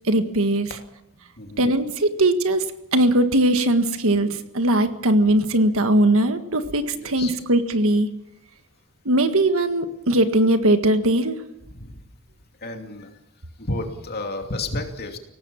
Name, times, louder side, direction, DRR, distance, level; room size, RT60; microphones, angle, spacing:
voice 1, 0.1-0.7 1.6-2.6 2.9-8.1 9.0-11.4, right 1 dB, 65° right, 8 dB, 1.7 m, -20 dB
voice 2, 1.4-1.7 6.9-7.3 11.7-12.0 12.6-13.2 13.6-15.2, left 2 dB, 45° left, 4 dB, 2.8 m, -31 dB
22.5 x 18.0 x 7.2 m, 0.87 s
head